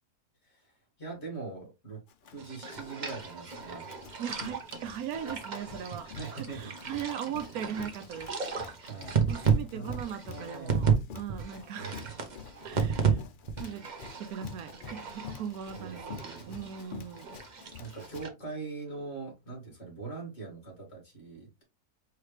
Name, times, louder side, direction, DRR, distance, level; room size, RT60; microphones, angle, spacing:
voice 1, 0.4-0.7 1.0-2.0 2.3-3.9 6.0-6.9 8.9-9.3 9.7-10.0 10.3-11.0 11.8-12.1 15.7-16.6 17.8-21.6, right 4 dB, 45° left, 2.6 m, -42 dB
Run, 2.1-18.3, left 6 dB, 80° left, 0.4 m, -48 dB
sound 1, 2.4-11.0 11.3-13.1 13.5-18.3, right 6 dB, 40° right, 0.8 m, -33 dB
voice 2, 4.2-8.3 9.3-12.0 12.6-13.2 13.6-13.8 14.2-16.2 16.5-17.4, right 8 dB, 75° right, 1.1 m, -39 dB
4.7 x 3.2 x 3.2 m
omnidirectional pair, 1.6 m